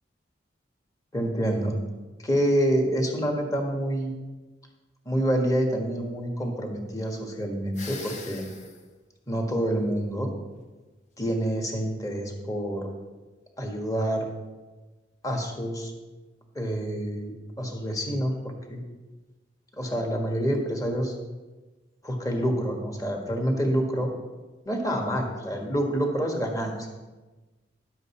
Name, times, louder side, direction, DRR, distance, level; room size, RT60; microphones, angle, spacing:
voice 1, 1.1-1.8 2.2-4.1 5.0-8.4 9.3-10.3 11.2-12.9 13.6-14.2 15.2-15.9 16.5-18.8 19.8-21.1 22.0-24.1 24.6-26.8, equal, 20° left, 2 dB, 1.4 m, -27 dB
sound 1, 7.7-8.8, left 4 dB, 40° left, 0.9 m, -41 dB
11.0 x 7.8 x 4.3 m, 1.2 s
head